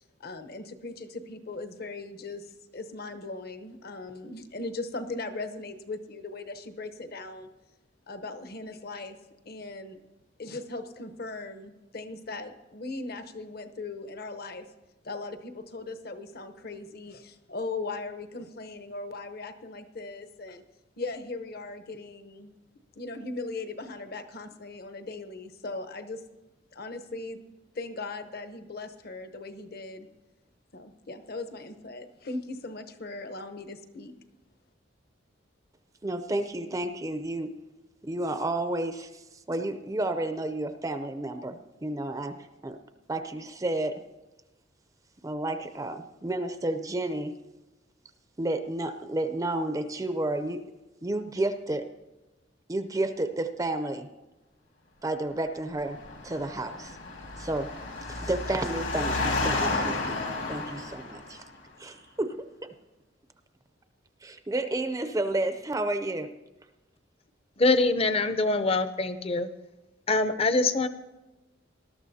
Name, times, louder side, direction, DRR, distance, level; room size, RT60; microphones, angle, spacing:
voice 1, 0.0-7.5 8.1-9.2 9.5-10.0 10.4-14.7 15.0-20.6 21.0-22.5 22.9-26.2 26.7-27.4 27.7-30.1 30.7-34.1, left 3 dB, 55° left, 9 dB, 0.9 m, -39 dB
voice 2, 36.0-37.5 38.0-39.1 39.5-42.4 42.6-42.8 43.1-44.0 45.2-47.3 48.4-50.6 51.0-51.9 52.7-54.1 55.0-56.0 56.2-57.0 57.4-57.7 58.1-60.2 60.5-61.4 61.8-62.4 64.2-66.3, right 2 dB, 20° right, 9 dB, 0.5 m, -31 dB
Engine, 55.8-61.4, left 2 dB, 70° left, 2.1 m, -32 dB
voice 3, 67.6-69.5 70.1-70.9, left 3 dB, 30° left, 10 dB, 0.6 m, -24 dB
19.5 x 12.5 x 2.8 m, 1.1 s
head